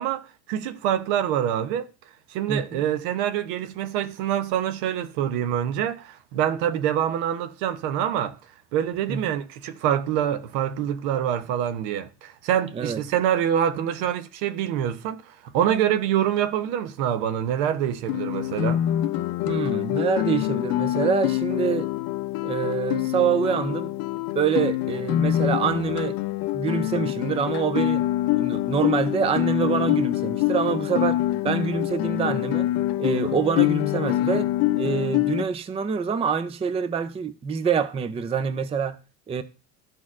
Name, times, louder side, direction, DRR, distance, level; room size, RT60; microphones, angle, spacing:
voice 1, 0.0-1.9 2.3-8.4 8.7-18.8 33.3-33.4, right 10 dB, 80° right, 0.8 m, -25 dB
voice 2, 2.5-2.8 9.1-9.3 12.7-13.0 19.5-21.9 22.4-23.9 24.4-26.2 26.5-28.0 28.3-31.2 31.4-32.7 33.0-34.5 34.7-39.0 39.3-39.4, right 6 dB, 15° right, 0.4 m, -26 dB
Guitar, 18.1-35.4, left 15 dB, 60° left, 0.5 m, -25 dB
12.5 x 4.2 x 2.4 m
supercardioid pair, 110°, 39 cm